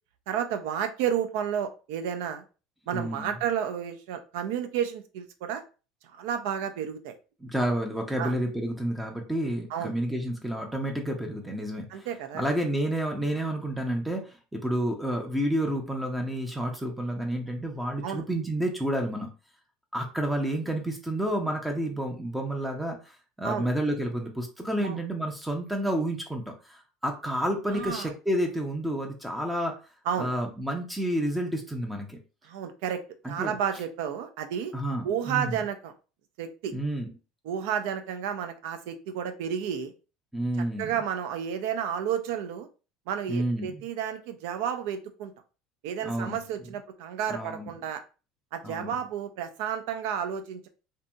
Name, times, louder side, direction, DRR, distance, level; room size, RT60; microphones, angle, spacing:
voice 1, 0.3-2.4 2.9-5.6 6.1-7.2 8.2-8.3 9.7-9.9 11.9-12.5 18.0-18.2 23.4-23.7 24.8-25.0 27.7-28.1 30.1-30.3 32.4-34.7 35.0-35.9 36.4-36.7 37.4-39.9 40.8-42.7 43.1-45.3 45.8-48.0 48.5-50.7, right 8 dB, 75° right, 8 dB, 0.5 m, -31 dB
voice 2, 2.9-3.4 7.4-12.1 12.3-19.3 19.9-29.7 30.2-32.2 33.2-33.6 34.7-35.5 36.7-37.1 40.3-40.9 43.3-43.8 46.0-46.4 47.3-47.7 48.6-49.0, right 1 dB, 5° right, 2 dB, 0.5 m, -30 dB
2.7 x 2.6 x 2.2 m, 0.33 s
supercardioid pair, 135°, 0 cm